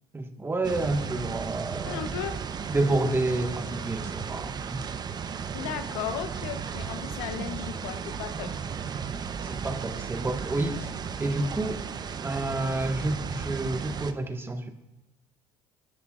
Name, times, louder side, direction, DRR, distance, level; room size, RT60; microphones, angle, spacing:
voice 1, 0.1-2.2 2.7-4.8 9.4-10.9 11.2-11.8 12.2-14.7, right 2 dB, 20° right, 5 dB, 1.6 m, -29 dB
sound 1, 0.6-14.1, right 6 dB, 35° right, 0.9 m, -35 dB
voice 2, 1.8-2.4 5.5-8.6, left 9 dB, 80° left, 9 dB, 1.0 m, -35 dB
24.5 x 12.5 x 2.5 m, 0.92 s
hypercardioid pair, 75°, 12 cm